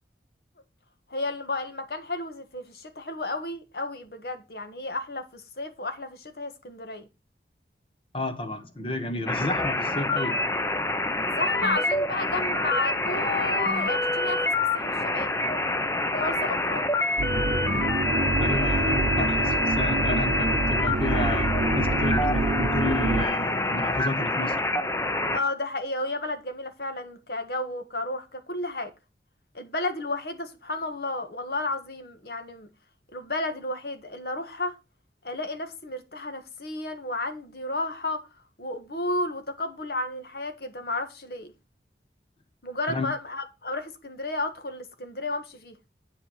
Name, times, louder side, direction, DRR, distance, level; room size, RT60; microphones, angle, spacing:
voice 1, 1.1-7.1 11.2-15.3 15.9-16.9 25.3-28.9 29.5-32.7 33.1-34.7 35.2-38.2 38.6-41.5 42.6-45.8, left 2 dB, 60° left, 1.5 m, -32 dB
voice 2, 8.1-10.4 18.4-24.6 42.9-43.1, left 2 dB, 30° left, 1.4 m, -31 dB
sound 1, 9.3-25.4, left 2 dB, 15° left, 0.7 m, -26 dB
sound 2, 17.2-23.3, right 2 dB, 75° right, 0.7 m, -27 dB
8.6 x 5.7 x 5.6 m
head